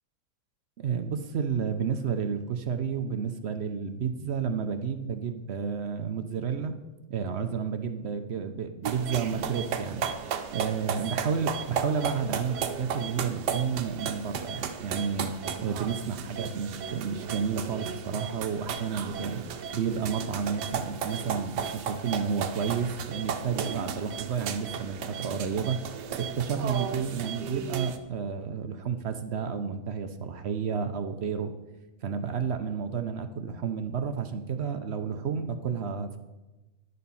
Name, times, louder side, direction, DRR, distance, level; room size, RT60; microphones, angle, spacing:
voice 1, 0.8-6.7 7.1-10.1 10.5-15.3 15.6-19.4 19.7-25.8 26.2-31.5 32.0-36.2, right 6 dB, 60° right, 8 dB, 0.7 m, -31 dB
sound 1, 8.8-28.0, right 7 dB, 85° right, 1.3 m, -34 dB
11.0 x 6.8 x 5.5 m, 1.1 s
omnidirectional pair, 1.8 m